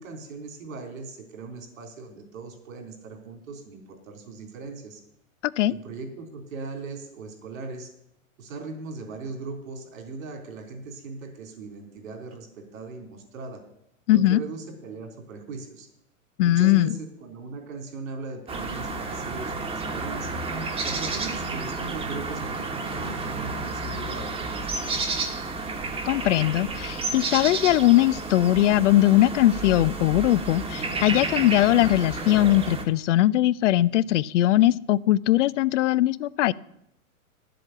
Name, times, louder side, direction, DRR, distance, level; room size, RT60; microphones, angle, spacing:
voice 1, 0.0-5.0 5.7-7.9 8.4-13.6 14.1-15.9 16.4-20.4 20.8-25.3, right 4 dB, 70° right, 5 dB, 3.5 m, -39 dB
voice 2, 5.4-5.7 14.1-14.4 16.4-16.9 26.1-36.5, left 14 dB, 60° left, 20 dB, 0.5 m, -20 dB
sound 1, 18.5-32.8, right 3 dB, 15° right, 1.3 m, -31 dB
10.5 x 7.8 x 7.8 m, 0.76 s
hypercardioid pair, 130°, 42 cm